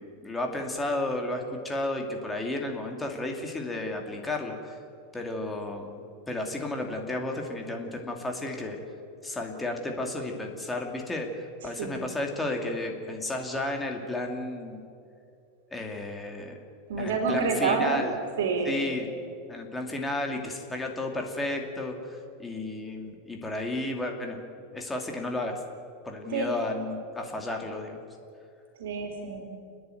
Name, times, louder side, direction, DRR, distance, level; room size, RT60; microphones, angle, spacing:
voice 1, 0.0-4.8 5.1-8.8 9.2-14.9 15.7-16.6 17.0-18.1 18.6-19.1 19.5-24.4 24.7-25.6 26.0-28.0, left 2 dB, 10° left, 2 dB, 2.5 m, -33 dB
voice 2, 11.6-12.1 16.9-18.1 18.4-18.9 26.3-26.5 28.8-29.4, right 4 dB, 90° right, 2 dB, 3.0 m, -28 dB
30.0 x 10.0 x 9.3 m, 2.5 s
supercardioid pair, 150°, 0 cm